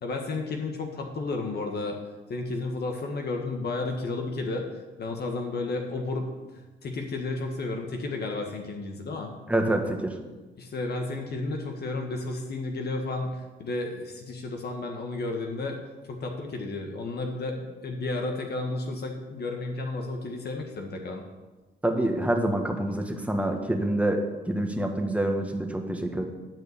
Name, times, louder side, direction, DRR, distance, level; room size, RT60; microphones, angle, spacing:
voice 1, 0.0-2.0 2.3-4.7 5.0-6.3 6.8-9.3 10.6-15.8 16.1-21.2, left 3 dB, 55° left, 3 dB, 1.6 m, -32 dB
voice 2, 9.5-10.2 21.8-26.2, right 1 dB, 5° right, 4 dB, 1.4 m, -26 dB
11.5 x 4.9 x 8.2 m, 1.2 s
cardioid pair, 90°, 20 cm